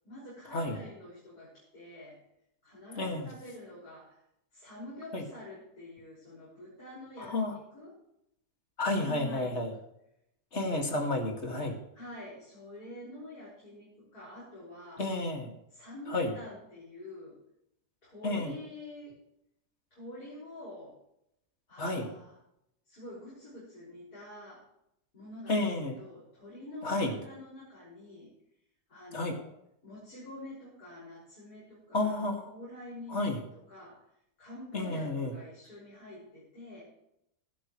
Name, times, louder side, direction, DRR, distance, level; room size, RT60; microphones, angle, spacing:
voice 1, 0.0-2.2 2.6-4.2 4.5-8.0 8.9-9.6 10.5-11.0 11.9-15.1 15.7-17.4 18.0-19.2 19.9-21.0 21.7-22.4 22.9-24.7 25.1-28.3 28.9-29.5 29.8-34.0 34.4-36.8, left 1 dB, 70° left, -7 dB, 6.4 m, -47 dB
voice 2, 3.0-3.3 5.1-5.2 7.3-7.6 8.8-9.7 10.5-11.8 15.0-15.5 16.1-16.3 18.2-18.5 21.8-22.1 25.5-26.0 26.8-27.1 29.1-29.4 31.9-32.4 33.1-33.4 34.7-35.4, left 2 dB, 45° left, 3 dB, 2.4 m, -31 dB
16.5 x 12.0 x 3.2 m, 0.78 s
omnidirectional pair, 1.7 m